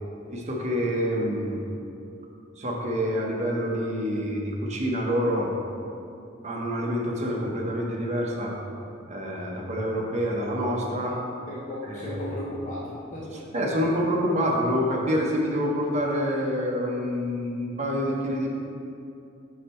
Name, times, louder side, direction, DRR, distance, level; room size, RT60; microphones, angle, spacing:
voice 1, 0.3-1.6 2.6-5.5 6.4-8.5 9.1-11.2 11.9-12.3 13.5-18.5, equal, 35° right, -2 dB, 0.9 m, -27 dB
voice 2, 11.5-13.6, left 1 dB, 40° left, -6 dB, 0.8 m, -36 dB
5.5 x 5.0 x 4.3 m, 2.7 s
head